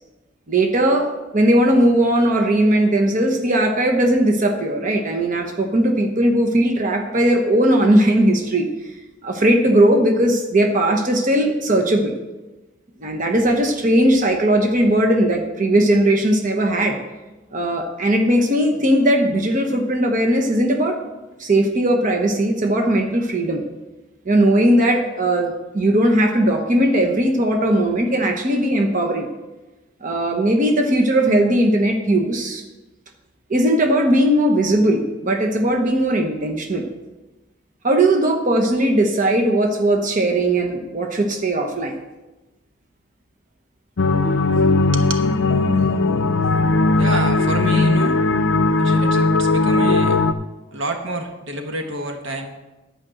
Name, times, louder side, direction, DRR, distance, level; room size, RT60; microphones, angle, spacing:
voice 1, 0.5-8.7 9.2-12.1 13.0-17.0 17.5-21.0 21.4-23.6 24.2-29.3 30.0-32.6 33.5-36.9 37.8-41.9, right 1 dB, 40° right, 3 dB, 1.1 m, -18 dB
sound 1, 44.0-50.3, left 3 dB, 65° left, 0.5 m, -18 dB
voice 2, 47.0-48.2 48.8-50.2 50.7-52.5, right 2 dB, 75° right, 4 dB, 1.2 m, -27 dB
10.5 x 5.2 x 7.6 m, 1.1 s
head